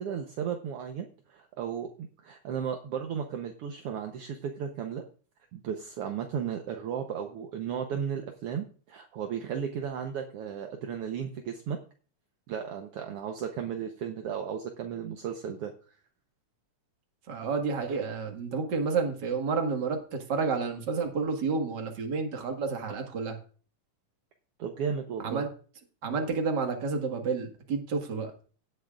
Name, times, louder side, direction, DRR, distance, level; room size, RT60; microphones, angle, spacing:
voice 1, 0.0-5.0 5.5-11.8 12.5-15.7 24.6-25.4, right 7 dB, 65° right, 4 dB, 1.5 m, -35 dB
voice 2, 17.3-23.4 25.2-25.5 26.0-28.3, right 4 dB, 40° right, 3 dB, 1.8 m, -30 dB
17.0 x 9.2 x 2.4 m, 0.40 s
omnidirectional pair, 3.6 m